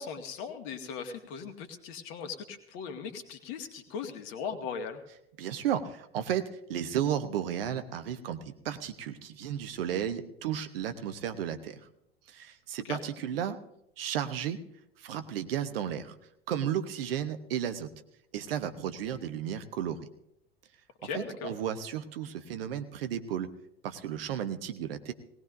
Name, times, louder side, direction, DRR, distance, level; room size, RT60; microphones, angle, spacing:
voice 1, 0.0-5.0 12.9-13.0 21.0-21.5, left 6 dB, 55° left, 6 dB, 1.8 m, -38 dB
voice 2, 5.4-11.8 12.3-13.6 14.0-14.6 15.0-16.1 16.5-17.9 18.3-20.0 21.0-23.5 23.8-25.1, right 9 dB, 65° right, 10 dB, 1.0 m, -33 dB
19.0 x 18.0 x 2.6 m, 0.78 s
figure-of-eight pair, 75°, 31 cm